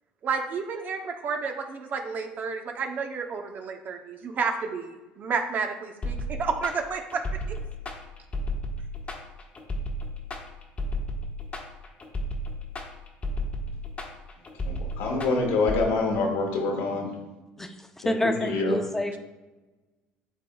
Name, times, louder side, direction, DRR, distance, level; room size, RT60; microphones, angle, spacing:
voice 1, 0.2-7.6, right 5 dB, 45° right, 5 dB, 0.7 m, -31 dB
sound 1, 6.0-15.8, equal, 35° left, 1.2 m, -33 dB
voice 2, 14.6-17.1 18.0-18.8, left 3 dB, 75° left, 1 dB, 1.5 m, -26 dB
voice 3, 17.6-19.2, left 1 dB, 10° left, 6 dB, 0.7 m, -29 dB
11.0 x 3.8 x 2.3 m, 1.1 s
supercardioid pair, 90°, 4 cm